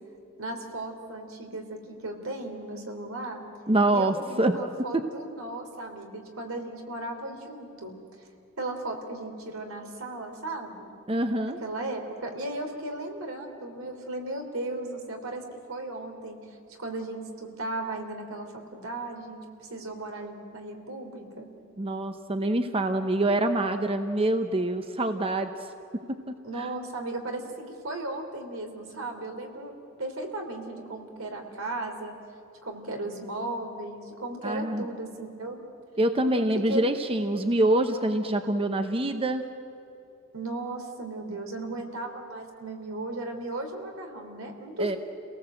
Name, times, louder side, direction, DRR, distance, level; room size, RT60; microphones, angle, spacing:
voice 1, 0.4-3.4 3.9-8.3 8.6-10.9 11.6-21.5 26.4-29.7 30.0-32.2 32.6-35.6 36.7-36.8 40.3-45.0, right 2 dB, 80° right, 4 dB, 3.2 m, -36 dB
voice 2, 3.7-4.6 4.9-5.0 11.1-11.6 21.8-25.7 26.3-26.7 34.4-34.9 36.0-39.4 44.8-45.0, right 1 dB, 25° right, 7 dB, 0.9 m, -25 dB
29.0 x 18.5 x 7.9 m, 2.8 s
head